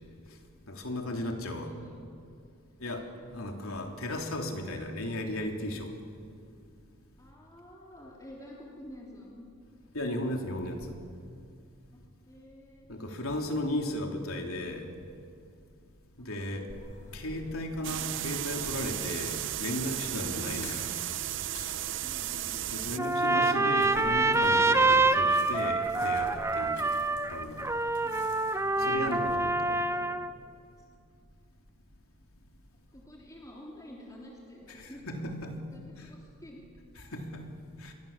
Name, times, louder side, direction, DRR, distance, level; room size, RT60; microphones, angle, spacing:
voice 1, 0.7-1.7 2.8-5.9 9.9-11.0 12.9-14.9 16.2-16.7 17.1-20.8 22.7-26.9 27.3-27.7 28.7-29.8 34.7-35.6 36.0-36.1 36.9-37.5 37.8-37.9, left 1 dB, 85° left, 2 dB, 3.4 m, -35 dB
voice 2, 1.6-1.9 2.8-3.0 7.2-9.5 11.9-12.9 16.7-17.4 22.0-22.7 26.9-27.2 28.0-29.2 29.6-30.2 32.9-35.0 35.7-36.6, left 1 dB, 15° left, -3 dB, 3.4 m, -50 dB
sound 1, 16.7-29.4, left 2 dB, 60° left, 4.6 m, -50 dB
sound 2, 17.8-23.0, right 13 dB, 60° right, 0.5 m, -34 dB
Trumpet, 23.0-30.3, right 3 dB, 15° right, 0.7 m, -26 dB
27.5 x 22.5 x 7.4 m, 2.3 s
head